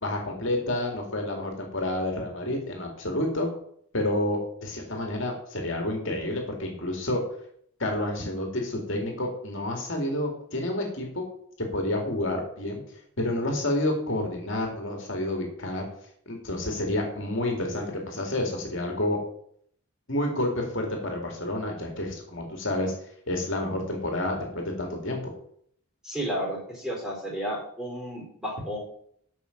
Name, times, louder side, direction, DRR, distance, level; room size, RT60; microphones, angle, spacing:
voice 1, 0.0-3.5 3.9-7.2 7.8-11.2 11.6-12.8 13.2-15.9 16.3-19.2 20.1-22.9 23.3-25.3, left 1 dB, 60° left, 1 dB, 2.2 m, -29 dB
voice 2, 26.0-28.8, equal, 5° right, -3 dB, 4.0 m, -32 dB
10.0 x 6.2 x 5.7 m, 0.66 s
head